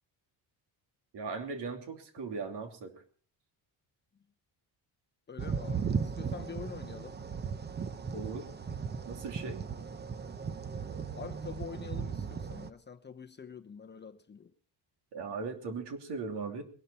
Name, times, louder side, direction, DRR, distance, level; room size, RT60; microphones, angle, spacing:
voice 1, 1.1-3.0 8.1-8.5 9.1-9.6 15.1-16.6, right 4 dB, 70° right, 3.1 m, -38 dB
voice 2, 5.3-7.2 11.2-14.5, left 6 dB, 25° left, 0.9 m, -46 dB
sound 1, 5.4-12.7, right 6 dB, 25° right, 0.7 m, -37 dB
21.0 x 12.5 x 4.4 m
cardioid pair, 160°, 43 cm